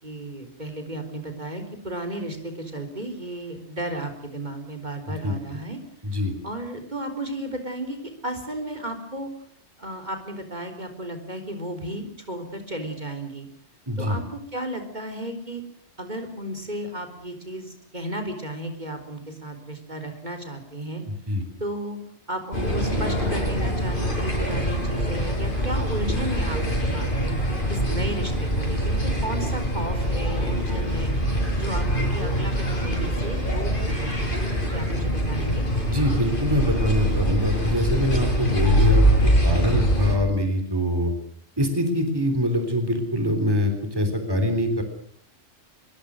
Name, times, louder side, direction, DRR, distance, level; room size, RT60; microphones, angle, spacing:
voice 1, 0.0-5.8 6.1-9.3 9.8-13.5 14.0-15.6 16.0-21.0 21.6-22.0 22.3-27.3 27.7-31.1 31.5-34.3 34.7-35.7, right 1 dB, 40° right, 6 dB, 4.2 m, -34 dB
voice 2, 5.1-5.6 6.0-6.3 13.9-14.2 21.1-21.4 35.9-41.1 41.6-44.8, equal, 20° right, 6 dB, 3.7 m, -24 dB
sound 1, 22.5-40.1, equal, 45° left, 7.5 m, -24 dB
25.5 x 22.5 x 6.4 m, 0.65 s
omnidirectional pair, 1.2 m